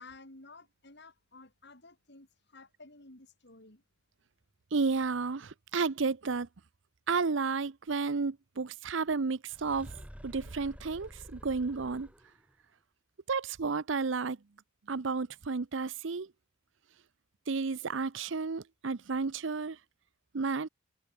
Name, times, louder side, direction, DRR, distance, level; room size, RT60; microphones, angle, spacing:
voice 1, 0.0-3.8, left 3 dB, 60° left, 5.1 m, -53 dB
voice 2, 4.7-6.5 7.1-9.9 10.2-12.1 13.3-14.4 14.9-16.3 17.5-19.8 20.3-20.7, right 4 dB, 70° right, 0.7 m, -32 dB
sound 1, 9.5-12.5, equal, 5° right, 4.7 m, -49 dB
head